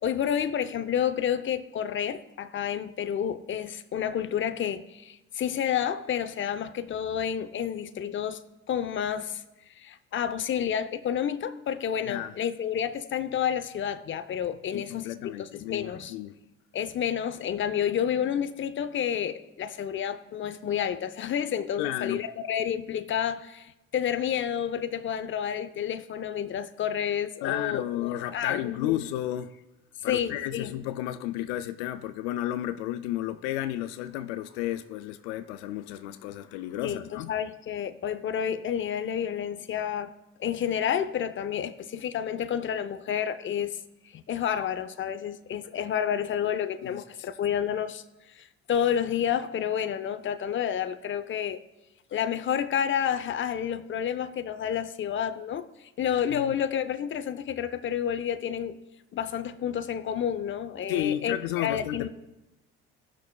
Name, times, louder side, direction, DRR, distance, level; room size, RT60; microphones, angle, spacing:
voice 1, 0.0-8.4 8.7-9.4 9.8-16.1 16.7-29.0 30.0-30.7 36.8-40.1 40.4-43.8 44.1-48.0 48.3-51.6 52.1-58.8 59.1-62.1, left 9 dB, 35° left, 0.6 m, -30 dB
voice 2, 14.7-16.4 21.8-22.2 27.4-29.5 30.0-37.3 46.8-47.0 56.3-56.5 60.9-62.1, left 13 dB, 80° left, 0.5 m, -32 dB
17.5 x 6.1 x 2.3 m
hypercardioid pair, 65°, 34 cm